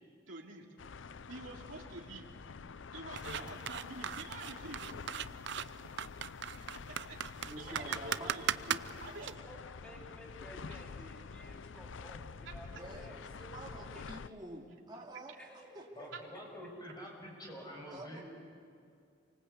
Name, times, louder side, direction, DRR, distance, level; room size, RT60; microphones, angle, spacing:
voice 1, 0.3-0.6 1.3-2.3 2.9-4.9 6.9-7.2 7.6-8.5 9.0-9.4 10.7-10.8 12.4-12.5 16.1-16.2, right 3 dB, 80° right, -1 dB, 3.2 m, -47 dB
sound 1, 0.8-14.3, left 5 dB, 75° left, 0.6 m, -48 dB
sound 2, 3.2-9.3, right 8 dB, 65° right, 0.6 m, -38 dB
voice 2, 7.5-9.4 9.8-10.3 12.8-14.6 14.9-15.9 17.9-18.2, right 1 dB, 25° right, -2 dB, 2.7 m, -49 dB
voice 3, 9.5-13.2 13.9-14.1 15.3-16.1 16.5-16.7, equal, 5° left, -1 dB, 2.9 m, -54 dB
voice 4, 16.0-18.2, equal, 20° left, 0 dB, 6.7 m, -47 dB
28.0 x 24.5 x 8.3 m, 2.4 s
head